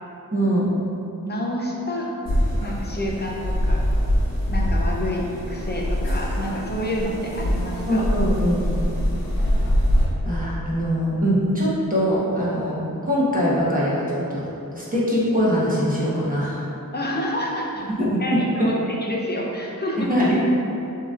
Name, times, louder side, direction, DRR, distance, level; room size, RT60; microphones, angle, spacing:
voice 1, 0.3-0.7 7.9-8.7 10.2-16.7 17.9-18.2 18.6-18.7 20.1-20.3, equal, 25° right, -8 dB, 1.2 m, -22 dB
voice 2, 1.2-2.1 2.6-3.8 4.4-8.0 16.9-17.8 18.2-20.1, left 1 dB, 30° left, -2 dB, 0.7 m, -28 dB
sound 1, 2.3-10.1, equal, 75° left, 1.0 m, -23 dB
6.8 x 2.8 x 2.5 m, 2.8 s
wide cardioid pair, 80°, 34 cm